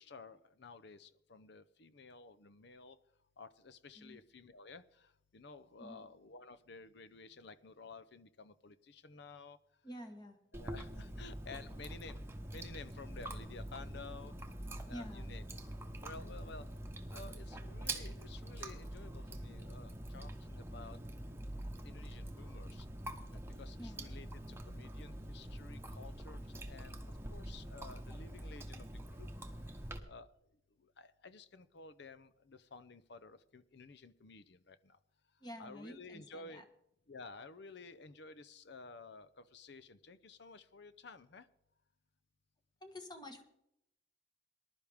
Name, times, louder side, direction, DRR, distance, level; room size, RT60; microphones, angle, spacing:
voice 1, 0.0-3.0 3.4-9.6 10.5-12.2 12.5-14.4 14.9-15.4 16.0-16.7 17.1-21.0 21.8-22.9 23.3-26.4 26.7-27.0 27.3-29.3 30.1-30.3 30.8-35.0 35.6-36.6 37.1-41.5, left 4 dB, 60° left, 15 dB, 0.7 m, -53 dB
voice 2, 9.8-10.4 14.9-15.3 23.8-24.0 35.4-36.6 42.8-43.4, equal, 20° left, 6 dB, 1.4 m, -49 dB
Chewing mastication, 10.5-30.0, right 1 dB, 15° right, 1.1 m, -45 dB
20.0 x 11.5 x 3.6 m, 0.80 s
head